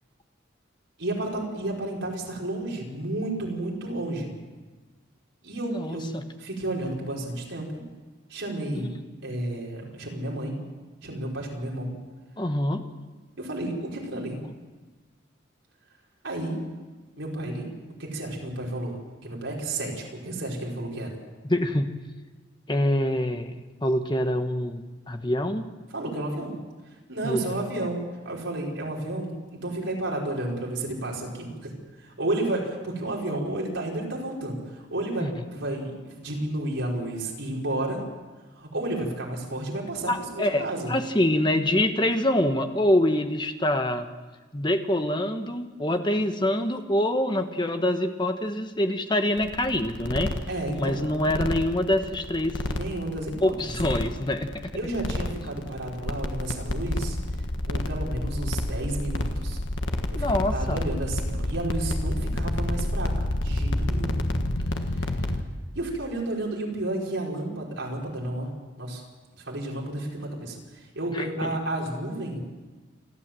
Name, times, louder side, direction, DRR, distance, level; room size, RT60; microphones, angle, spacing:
voice 1, 1.0-4.3 5.4-6.1 6.4-7.8 8.3-8.9 9.2-10.6 11.0-11.9 13.4-14.4 16.2-16.6 17.2-19.0 19.2-21.2 25.9-26.5 26.9-28.0 28.2-38.0 38.5-40.9 50.5-51.0 52.7-53.5 54.7-57.2 57.6-59.6 60.1-64.2 64.7-65.3 65.7-68.5 68.8-69.0 69.4-72.4, right 1 dB, 75° right, -2 dB, 5.2 m, -32 dB
voice 2, 5.7-6.2 12.4-12.8 21.4-21.9 22.7-23.5 23.8-25.7 27.2-27.4 35.2-35.4 40.1-44.1 44.5-50.4 50.8-52.6 53.4-54.7 60.1-60.8 71.1-71.5, left 1 dB, 25° left, 7 dB, 1.2 m, -25 dB
sound 1, 49.4-65.4, left 1 dB, 70° left, 1.5 m, -29 dB
28.5 x 12.0 x 7.7 m, 1.3 s
head